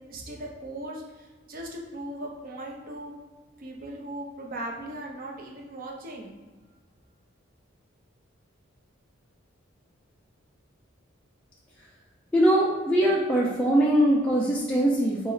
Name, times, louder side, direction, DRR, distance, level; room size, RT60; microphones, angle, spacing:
voice 1, 0.1-3.1 3.6-6.4, right 1 dB, 45° right, 0 dB, 0.6 m, -38 dB
voice 2, 12.3-15.3, right 1 dB, 5° left, -6 dB, 0.4 m, -22 dB
4.0 x 2.1 x 3.8 m, 1.3 s
head